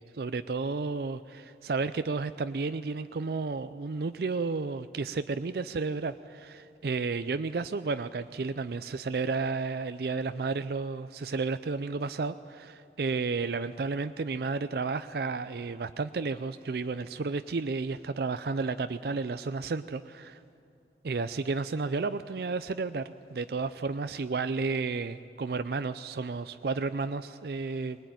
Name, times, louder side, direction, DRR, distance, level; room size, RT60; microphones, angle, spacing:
voice 1, 0.1-20.4 21.0-28.0, right 4 dB, 60° right, 12 dB, 0.4 m, -32 dB
20.5 x 19.5 x 9.2 m, 2.5 s
head